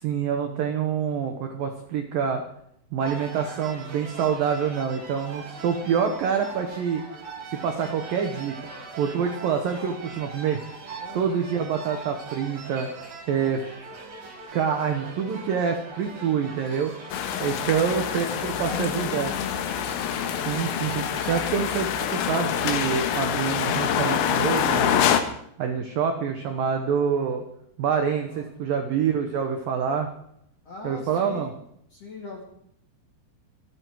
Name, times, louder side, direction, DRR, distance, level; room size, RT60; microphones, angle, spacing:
voice 1, 0.0-2.4 2.9-7.0 7.5-8.6 9.0-10.6 11.1-12.9 13.3-13.6 14.5-16.9 17.4-19.3 20.5-25.0 25.6-27.4 27.8-30.1 30.8-31.5, right 7 dB, 75° right, 5 dB, 2.1 m, -26 dB
sound 1, 3.0-22.9, right 3 dB, 40° right, 4.3 m, -41 dB
voice 2, 11.0-11.3 17.3-19.3 28.2-28.5 30.6-31.5 31.9-32.4, left 3 dB, 45° left, 0 dB, 2.2 m, -43 dB
sound 2, 17.1-25.2, left 9 dB, 85° left, 3.8 m, -26 dB
25.5 x 9.8 x 4.7 m, 0.70 s
omnidirectional pair, 5.9 m